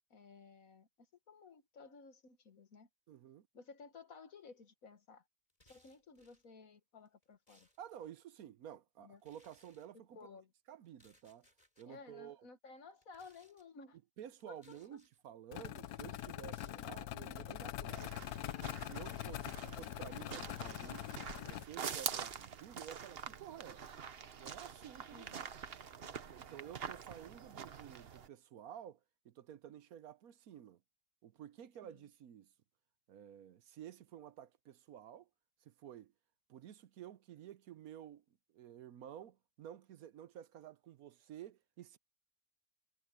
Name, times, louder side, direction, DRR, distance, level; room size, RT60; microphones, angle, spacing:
voice 1, 0.1-2.9 3.5-5.2 5.6-7.7 9.0-9.2 10.1-10.5 11.9-14.0 14.5-14.8 25.1-25.4 31.8-32.0, left 4 dB, 65° left, 2.0 m, -56 dB
voice 2, 3.1-3.5 7.8-10.2 10.7-11.5 11.8-12.5 14.2-18.1 18.8-21.1 21.4-23.9 24.4-25.5 26.1-29.0 29.2-30.8 31.2-32.5 33.1-35.3 35.6-36.1 36.5-38.2 38.5-42.0, right 10 dB, 75° right, 1.2 m, -52 dB
sound 1, 5.5-6.5 7.1-8.1 9.2-9.9 10.8-11.9 12.9-13.7 14.4-15.2 16.0-17.0, left 1 dB, 25° left, 7.3 m, -70 dB
sound 2, 15.5-21.6, left 13 dB, 85° left, 1.2 m, -43 dB
sound 3, 17.9-28.3, right 7 dB, 45° right, 1.0 m, -46 dB
omnidirectional pair, 1.6 m